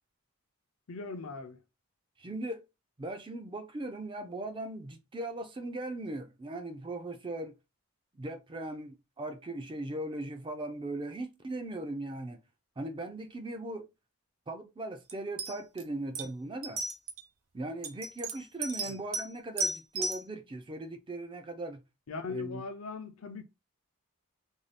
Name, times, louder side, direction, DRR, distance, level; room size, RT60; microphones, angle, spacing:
voice 1, 0.9-1.6 18.8-19.0 22.1-23.4, left 4 dB, 70° left, 0.5 m, -39 dB
voice 2, 2.2-2.7 3.0-7.5 8.2-12.4 12.8-13.9 14.5-16.8 17.5-21.8 22.3-22.6, right 2 dB, 20° right, 0.4 m, -39 dB
sound 1, 15.1-15.2 15.4-15.8 16.1-16.3 16.6-17.2 17.8-19.3 19.6-20.2, right 2 dB, 70° right, 0.7 m, -34 dB
2.7 x 2.3 x 3.3 m
head